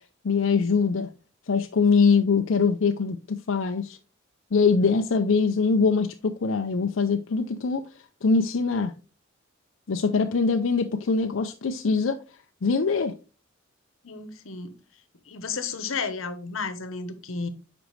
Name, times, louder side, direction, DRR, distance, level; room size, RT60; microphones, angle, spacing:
voice 1, 0.2-1.1 1.5-4.0 4.5-7.8 8.2-8.9 9.9-12.2 12.6-13.1, left 4 dB, 75° left, 0.5 m, -23 dB
voice 2, 14.0-14.7 15.3-17.5, left 5 dB, 90° left, 1.0 m, -32 dB
8.1 x 5.1 x 3.2 m
head